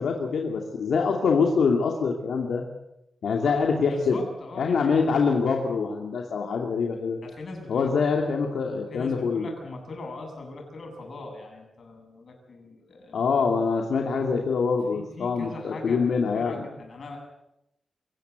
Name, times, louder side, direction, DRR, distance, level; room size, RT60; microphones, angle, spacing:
voice 1, 0.0-2.6 3.2-4.2 4.6-7.2 7.7-9.5 13.1-16.7, left 5 dB, 80° left, 1 dB, 2.6 m, -24 dB
voice 2, 3.9-4.9 7.2-7.9 8.9-13.3 14.9-17.2, left 2 dB, 50° left, 2 dB, 7.7 m, -40 dB
26.5 x 15.5 x 8.1 m, 0.86 s
wide cardioid pair, 140°, 0 cm